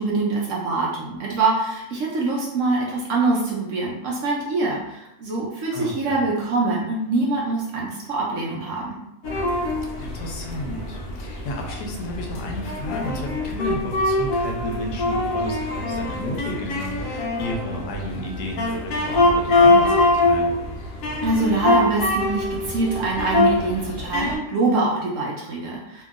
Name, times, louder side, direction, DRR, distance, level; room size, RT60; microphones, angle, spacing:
voice 1, 0.0-9.0 21.2-26.0, right 3 dB, 65° right, -3 dB, 0.9 m, -24 dB
voice 2, 5.7-6.2 10.0-20.6, left 1 dB, 85° left, 1 dB, 1.2 m, -32 dB
sound 1, 9.2-24.4, left 2 dB, 65° left, 0.9 m, -23 dB
2.9 x 2.6 x 2.4 m, 0.84 s
omnidirectional pair, 1.7 m